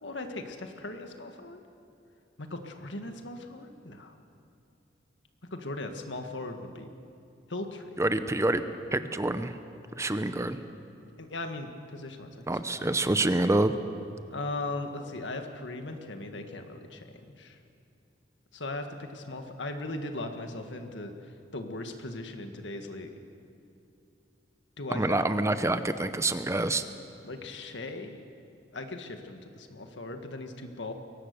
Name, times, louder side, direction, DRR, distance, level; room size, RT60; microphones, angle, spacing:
voice 1, 0.0-1.6 2.4-4.1 5.5-6.9 7.5-8.0 11.2-12.4 12.8-13.0 14.3-17.6 18.5-21.1 21.5-23.1 24.8-25.3 27.2-28.2 28.7-30.9, left 2 dB, 85° left, 6 dB, 1.8 m, -38 dB
voice 2, 8.0-8.6 8.9-9.6 10.0-10.6 12.5-13.7 24.9-26.8, right 2 dB, 15° right, 10 dB, 0.7 m, -27 dB
22.5 x 18.0 x 6.8 m, 2.7 s
head